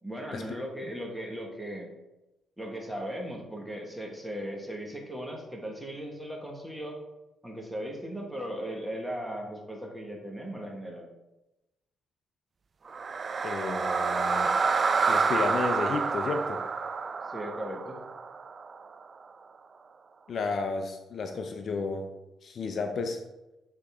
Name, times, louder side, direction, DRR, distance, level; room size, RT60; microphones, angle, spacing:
voice 1, 0.0-1.9 2.6-7.0 7.4-11.1 17.2-18.0, equal, 5° right, 0 dB, 1.3 m, -37 dB
sound 1, 12.9-19.0, right 5 dB, 40° right, 0.3 m, -28 dB
voice 2, 13.4-14.5 15.1-16.6 20.3-22.1 22.4-23.2, left 4 dB, 55° left, 6 dB, 0.5 m, -32 dB
7.9 x 3.8 x 3.5 m, 1.0 s
cardioid pair, 90°, 0 cm